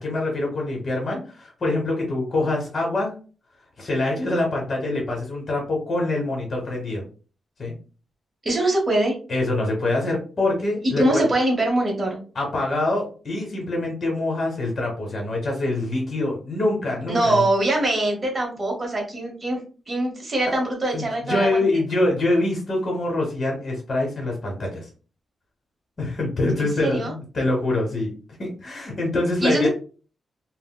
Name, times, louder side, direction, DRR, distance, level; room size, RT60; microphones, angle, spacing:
voice 1, 0.0-3.1 3.8-7.0 7.6-7.7 9.3-11.3 12.3-17.4 20.9-24.9 26.0-28.1 28.4-29.7, left 2 dB, 40° left, 0 dB, 0.9 m, -25 dB
voice 2, 8.4-9.2 10.8-12.2 17.1-19.6 19.9-21.8 26.6-27.1 29.4-29.7, right 1 dB, 30° right, -1 dB, 1.1 m, -23 dB
3.7 x 2.0 x 2.2 m, 0.37 s
wide cardioid pair, 145°, 0 cm